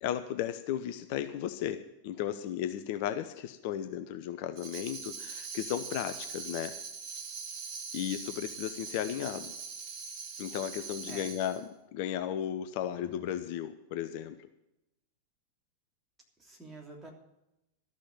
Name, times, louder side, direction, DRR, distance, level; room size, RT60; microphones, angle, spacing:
voice 1, 0.0-6.7 7.9-9.5 10.4-11.6 11.9-14.4, left 10 dB, 45° left, 9 dB, 0.7 m, -35 dB
Tambourine, 4.6-11.6, right 5 dB, 40° right, 1.5 m, -42 dB
voice 2, 12.9-13.4 16.4-17.1, right 2 dB, 10° right, -1 dB, 3.2 m, -49 dB
13.5 x 6.3 x 9.3 m, 0.89 s
figure-of-eight pair, 90°, 0 cm